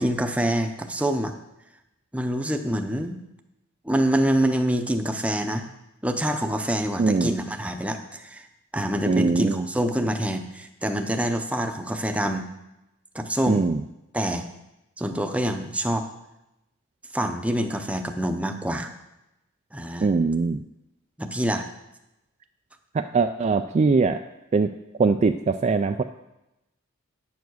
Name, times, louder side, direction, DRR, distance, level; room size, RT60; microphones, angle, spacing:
voice 1, 0.0-1.3 2.1-3.2 3.8-5.6 6.0-8.5 8.7-12.5 13.1-13.6 14.1-14.5 15.0-16.1 17.1-18.9 19.7-20.1 21.2-21.7, right 1 dB, 5° right, 6 dB, 0.7 m, -26 dB
voice 2, 7.0-7.3 9.1-9.7 13.5-13.8 20.0-20.6 22.9-24.2 24.5-24.7 25.0-26.0, right 4 dB, 35° right, 7 dB, 0.3 m, -22 dB
9.3 x 7.1 x 6.3 m, 0.91 s
head